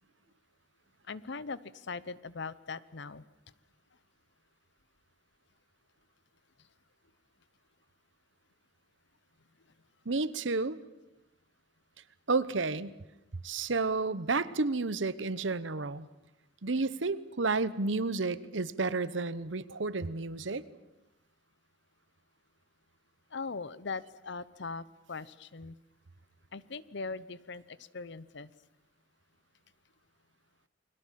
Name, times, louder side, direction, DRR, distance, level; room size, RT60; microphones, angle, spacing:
voice 1, 1.1-3.2 23.3-25.8 26.5-28.5, left 4 dB, 65° left, 17 dB, 0.9 m, -40 dB
voice 2, 10.0-10.8 12.3-13.0 13.4-16.1 16.6-20.6, right 3 dB, 70° right, 16 dB, 1.0 m, -31 dB
29.5 x 22.0 x 7.6 m, 0.96 s
head